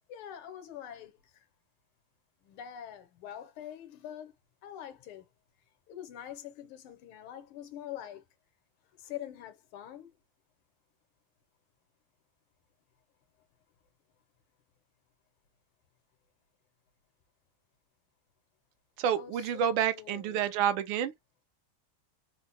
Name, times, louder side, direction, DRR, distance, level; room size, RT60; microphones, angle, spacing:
voice 1, 0.1-1.4 2.4-4.3 4.6-5.3 5.9-8.2 9.0-10.1 19.1-20.4, left 10 dB, 90° left, 1.7 m, -44 dB
voice 2, 19.0-21.1, right 9 dB, 75° right, 1.3 m, -29 dB
4.2 x 2.0 x 2.8 m
omnidirectional pair, 2.4 m